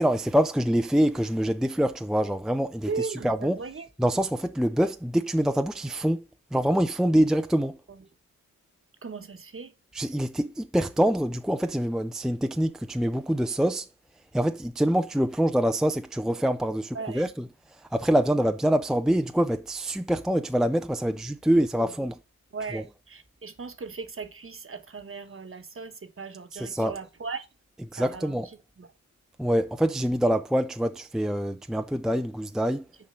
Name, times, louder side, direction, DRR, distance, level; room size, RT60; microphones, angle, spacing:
voice 1, 0.0-3.6 4.0-6.3 6.5-7.8 9.9-13.9 14.3-22.2 22.7-22.8 26.5-27.0 27.9-28.5 29.4-32.9, equal, ahead, 0.5 m, -25 dB
voice 2, 2.9-3.9 7.9-8.0 9.0-9.7 16.9-17.3 21.6-21.9 22.5-27.4 28.0-28.4 28.8-28.9, right 4 dB, 40° right, 1.3 m, -37 dB
6.9 x 4.8 x 5.5 m
cardioid pair, 60°, 32 cm